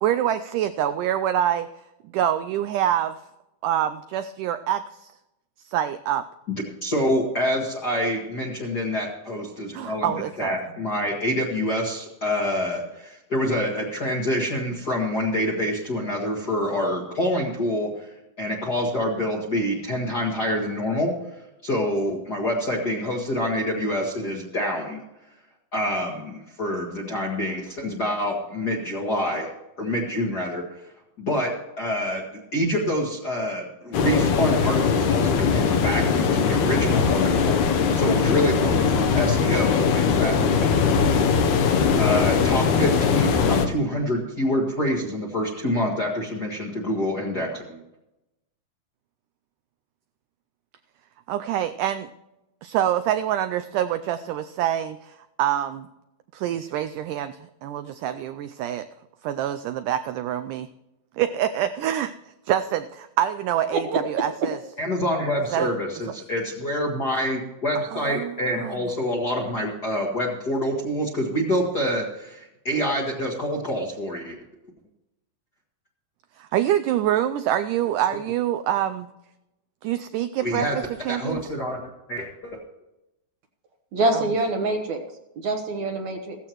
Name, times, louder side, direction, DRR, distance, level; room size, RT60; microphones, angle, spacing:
voice 1, 0.0-1.7 2.1-3.2 3.6-5.1 5.7-6.3 9.7-10.5 51.3-52.1 52.6-55.9 56.3-58.9 59.2-60.7 61.2-62.1 62.5-64.6 65.5-65.7 67.9-68.9 76.4-79.1 79.8-81.4 84.1-84.2, right 11 dB, 85° right, 1.8 m, -26 dB
voice 2, 6.5-10.1 10.4-21.1 21.6-25.0 25.7-29.5 29.8-30.6 31.2-31.5 31.8-32.2 32.5-40.7 42.0-47.8 64.8-74.4 80.4-80.8 81.1-81.8 82.1-82.6, equal, 40° left, 1.4 m, -26 dB
sound 1, 33.9-43.7, left 6 dB, 70° left, 2.1 m, -21 dB
voice 3, 83.9-85.0 85.4-86.4, right 2 dB, 65° right, 2.0 m, -25 dB
16.0 x 14.5 x 3.0 m
omnidirectional pair, 4.2 m